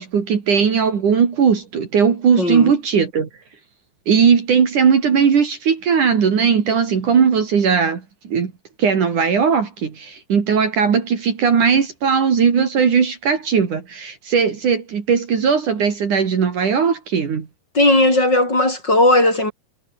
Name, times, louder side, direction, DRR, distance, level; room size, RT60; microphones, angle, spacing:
voice 1, 0.0-3.3 4.1-8.0 8.3-8.5 8.8-17.5, right 6 dB, 55° right, 4.2 m, -18 dB
voice 2, 2.4-2.7 17.7-19.5, left 1 dB, 25° left, 7.4 m, -16 dB
omnidirectional pair, 4.4 m